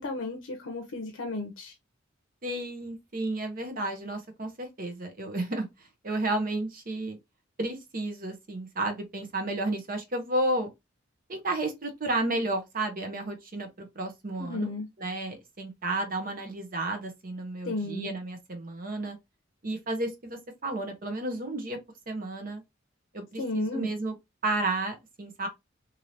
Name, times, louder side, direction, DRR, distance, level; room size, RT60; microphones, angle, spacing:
voice 1, 0.0-1.7 14.4-14.9 17.6-18.1 23.4-23.9, left 2 dB, 80° left, 0.6 m, -33 dB
voice 2, 2.4-7.2 7.6-10.7 11.3-14.7 15.0-19.2 19.6-21.8 22.1-22.6 23.1-24.1 24.4-25.5, right 2 dB, 45° right, 0.8 m, -32 dB
3.2 x 2.7 x 2.6 m
head